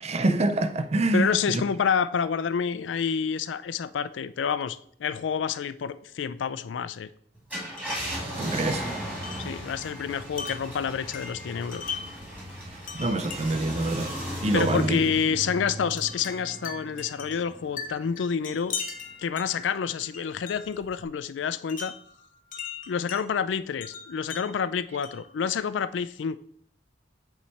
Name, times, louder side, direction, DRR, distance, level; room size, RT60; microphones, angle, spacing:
voice 1, 0.0-1.6 7.9-8.9 12.6-14.2 14.4-15.0, right 2 dB, 35° right, 0.5 m, -27 dB
voice 2, 1.1-7.1 9.4-12.0 14.5-18.8 19.2-21.9 22.9-26.4, left 6 dB, 75° left, 0.4 m, -28 dB
Car, 7.3-18.2 18.7-18.8 20.8-21.0, equal, 10° right, 2.0 m, -36 dB
Wind chime, 7.8-8.1 8.7-12.3 12.9-13.7 14.6-14.8 15.9-20.8 21.7-23.2 23.8-25.3, left 5 dB, 45° left, 0.8 m, -40 dB
8.3 x 3.2 x 4.2 m
head